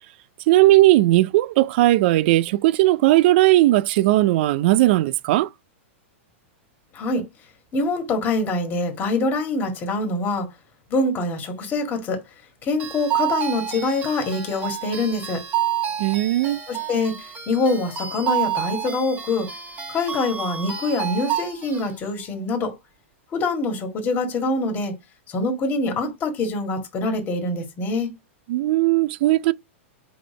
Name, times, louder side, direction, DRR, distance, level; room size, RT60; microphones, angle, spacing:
voice 1, 0.5-5.5 16.0-16.6 28.5-29.5, right 17 dB, 55° right, 0.4 m, -17 dB
voice 2, 7.7-10.5 10.9-12.2 12.6-15.4 16.7-19.5 19.9-22.7 23.3-24.9 25.3-28.1, left 2 dB, 25° left, 1.7 m, -24 dB
sound 1, 12.8-21.9, right 10 dB, 25° right, 1.5 m, -29 dB
4.7 x 4.0 x 4.9 m
hypercardioid pair, 135°, 7 cm